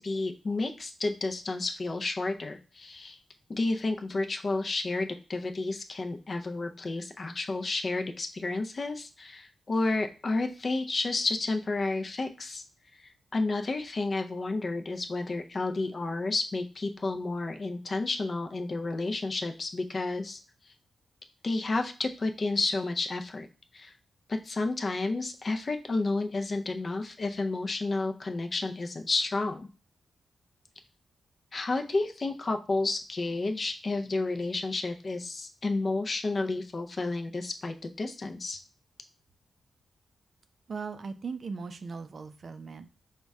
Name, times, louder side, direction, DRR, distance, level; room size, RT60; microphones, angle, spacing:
voice 1, 0.0-3.2 3.5-12.6 13.0-20.4 21.4-23.5 23.7-23.9 24.3-29.7 31.5-38.6, left 3 dB, 35° left, 5 dB, 0.4 m, -31 dB
voice 2, 40.7-42.9, right 5 dB, 45° right, 9 dB, 0.4 m, -38 dB
5.2 x 2.2 x 3.5 m, 0.34 s
wide cardioid pair, 155°, 0 cm